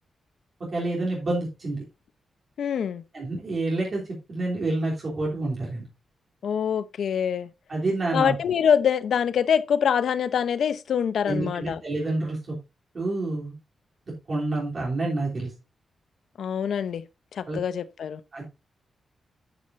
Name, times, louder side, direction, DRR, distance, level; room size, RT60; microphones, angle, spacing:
voice 1, 0.7-1.8 3.1-4.0 4.3-5.8 7.7-8.4 11.3-12.6 12.9-13.5 14.3-15.5 17.5-17.6 18.3-18.4, right 2 dB, 40° right, 3.2 m, -28 dB
voice 2, 2.6-3.0 6.4-7.5 8.1-11.8 16.4-17.0 17.3-18.2, left 8 dB, 75° left, 0.8 m, -24 dB
10.0 x 8.9 x 2.6 m
wide cardioid pair, 155°, 0 cm